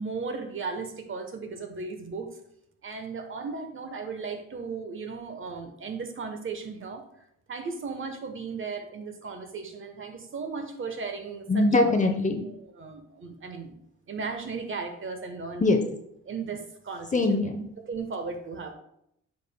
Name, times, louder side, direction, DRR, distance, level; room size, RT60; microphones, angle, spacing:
voice 1, 0.0-2.3 2.8-7.0 7.5-11.6 12.8-13.8 14.1-15.7 16.3-17.4 17.9-18.7, right 4 dB, 40° right, 6 dB, 1.1 m, -36 dB
voice 2, 11.5-12.4 15.6-15.8 17.1-17.6, left 2 dB, 25° left, 5 dB, 0.8 m, -22 dB
9.2 x 5.4 x 2.2 m, 0.75 s
cardioid pair, 90°, 30 cm